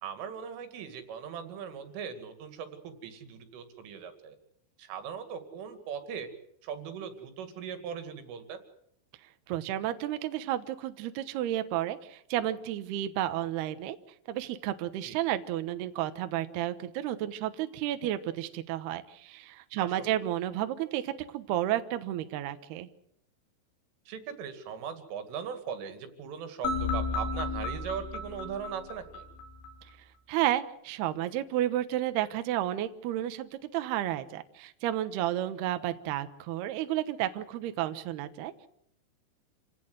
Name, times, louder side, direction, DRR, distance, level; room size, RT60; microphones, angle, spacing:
voice 1, 0.0-4.4 4.8-6.3 6.6-8.6 15.0-15.2 19.8-20.1 24.1-29.3, right 7 dB, 85° right, 8 dB, 4.9 m, -39 dB
voice 2, 9.5-14.0 14.3-22.9 30.3-38.7, right 13 dB, 70° right, 10 dB, 2.8 m, -32 dB
sound 1, 26.6-29.7, left 3 dB, 70° left, 6.7 m, -33 dB
28.0 x 17.5 x 7.9 m, 0.72 s
omnidirectional pair, 5.5 m